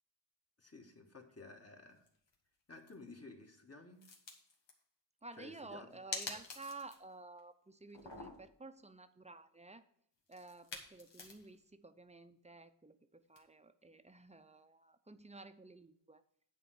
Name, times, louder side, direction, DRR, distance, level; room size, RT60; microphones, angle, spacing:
voice 1, 0.6-2.0 2.7-4.0 5.4-6.0, left 3 dB, 35° left, 3 dB, 1.6 m, -54 dB
sound 1, 2.1-2.3 2.7-2.9 4.0-4.7 6.1-7.1 7.4-7.5 7.9-8.6 10.3-11.6 13.4-13.5, left 4 dB, 90° left, 1.8 m, -46 dB
voice 2, 5.2-9.8 10.3-16.2, right 3 dB, 15° right, 11 dB, 0.6 m, -53 dB
9.6 x 4.5 x 7.8 m, 0.68 s
wide cardioid pair, 110°, 43 cm